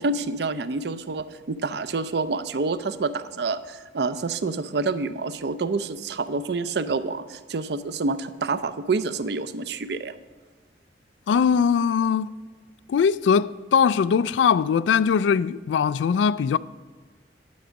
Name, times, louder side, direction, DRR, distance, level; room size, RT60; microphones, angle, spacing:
voice 1, 0.0-10.1, right 3 dB, 65° right, 0.5 m, -28 dB
voice 2, 11.3-12.3 12.9-16.6, left 6 dB, 90° left, 0.3 m, -21 dB
9.4 x 6.2 x 6.3 m
head